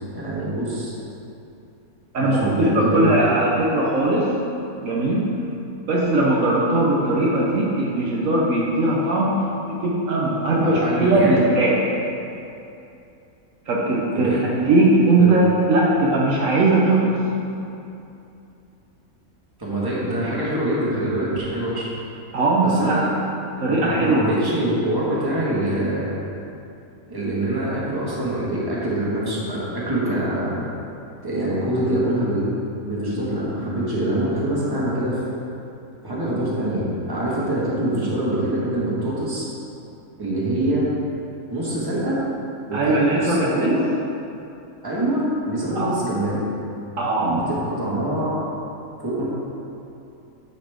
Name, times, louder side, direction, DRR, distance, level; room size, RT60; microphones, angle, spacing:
voice 1, 0.1-0.9 2.2-3.1 10.5-11.4 14.1-14.5 15.2-15.4 19.6-21.8 22.6-23.1 23.7-26.1 27.1-30.6 31.2-32.5 32.8-35.2 36.0-39.5 40.2-40.9 41.5-42.1 42.7-43.8 44.8-46.4 47.2-48.3 49.0-49.2, right 1 dB, 15° right, -7 dB, 1.6 m, -24 dB
voice 2, 2.1-4.3 4.8-5.3 5.9-11.8 13.7-17.1 22.3-23.0 23.6-24.2 42.7-43.7 45.7-45.9 47.0-47.4, right 2 dB, 65° right, -4 dB, 1.2 m, -19 dB
9.1 x 5.8 x 3.5 m, 2.7 s
omnidirectional pair, 1.5 m